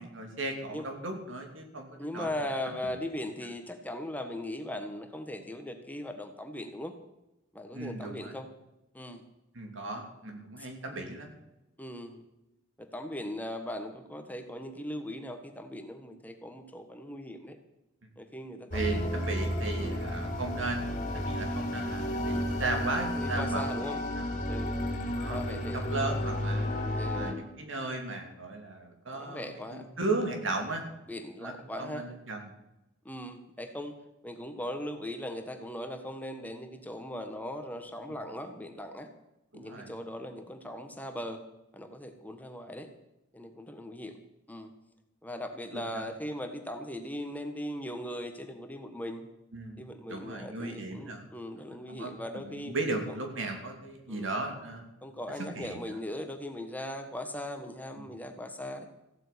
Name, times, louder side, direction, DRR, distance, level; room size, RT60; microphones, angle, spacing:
voice 1, 0.0-2.3 2.8-2.9 7.7-8.3 9.5-11.3 18.7-24.3 25.2-26.8 27.1-30.8 31.4-32.4 39.5-39.9 45.7-46.1 49.5-51.3 51.9-54.9 55.5-56.0 58.0-58.1, right 2 dB, 70° right, 4 dB, 3.0 m, -36 dB
voice 2, 2.0-6.9 7.5-8.5 8.9-9.2 10.6-10.7 11.8-12.2 12.8-17.6 18.2-19.1 19.8-20.0 23.2-24.0 24.5-24.8 25.3-25.8 27.0-27.4 29.1-29.9 31.1-32.1 33.0-39.1 39.5-41.4 41.7-42.9 43.3-44.2 44.5-44.7 45.2-49.3 49.8-52.7 53.1-53.2 54.1-54.3 55.0-58.9, left 1 dB, 10° left, 6 dB, 1.3 m, -39 dB
sound 1, 18.7-27.3, left 1 dB, 40° left, 2.5 m, -32 dB
15.0 x 8.5 x 8.6 m, 0.91 s
head